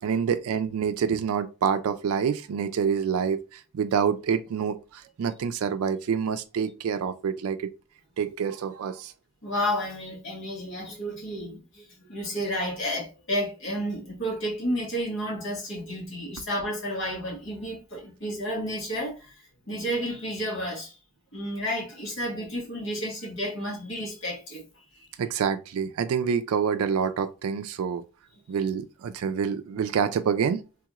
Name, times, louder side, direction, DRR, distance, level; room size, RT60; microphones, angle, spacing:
voice 1, 0.0-7.7 8.2-9.1 25.2-28.0 28.5-30.6, right 7 dB, 85° right, 0.3 m, -27 dB
voice 2, 9.4-19.3 19.7-21.0 21.3-24.6 24.9-25.1, equal, 60° left, 1.4 m, -31 dB
3.4 x 2.4 x 2.9 m
head